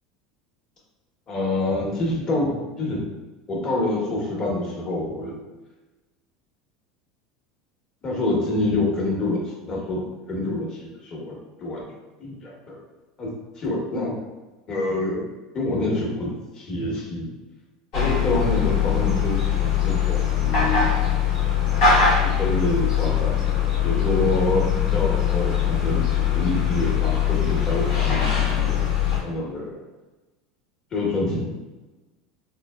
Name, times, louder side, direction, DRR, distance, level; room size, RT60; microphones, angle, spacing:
voice 1, 1.3-3.0 3.5-5.4 8.0-10.0 10.3-11.3 11.6-11.8 12.2-12.8 13.2-13.3 13.6-14.1 14.7-15.2 15.5-17.3 17.9-21.0 22.2-23.4 23.8-26.0 26.3-28.8 29.2-29.8 30.9-31.6, left 2 dB, 40° left, -3 dB, 1.1 m, -26 dB
sound 1, 17.9-29.2, left 8 dB, 75° left, 1.2 m, -22 dB
3.7 x 2.1 x 2.3 m, 1.1 s
supercardioid pair, 100°, 2 cm